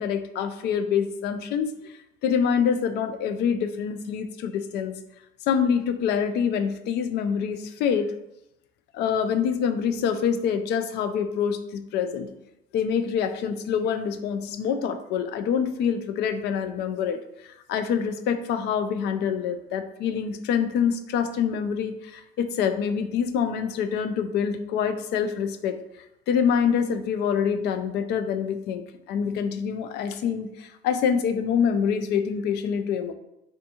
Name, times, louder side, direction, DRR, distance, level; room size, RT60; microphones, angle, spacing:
voice 1, 0.0-1.9 2.2-4.9 5.5-8.1 8.9-12.3 12.7-25.8 26.3-33.1, left 7 dB, 60° left, 9 dB, 0.4 m, -26 dB
3.5 x 2.5 x 2.8 m, 0.85 s
cardioid pair, 115°, 19 cm